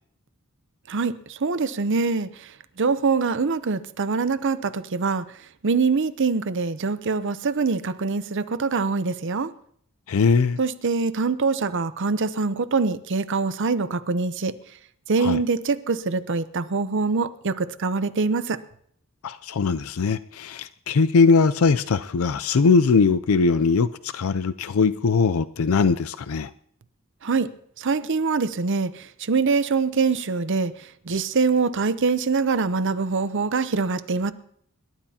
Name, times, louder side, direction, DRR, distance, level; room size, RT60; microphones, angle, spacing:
voice 1, 0.9-2.5 2.8-5.2 5.6-9.5 10.6-14.5 15.1-18.6 27.2-27.5 27.8-30.7 31.1-34.3, right 4 dB, 60° right, 0.7 m, -24 dB
voice 2, 10.1-10.6 15.2-15.4 19.2-26.5, left 4 dB, 80° left, 0.5 m, -20 dB
27.0 x 12.0 x 2.9 m
head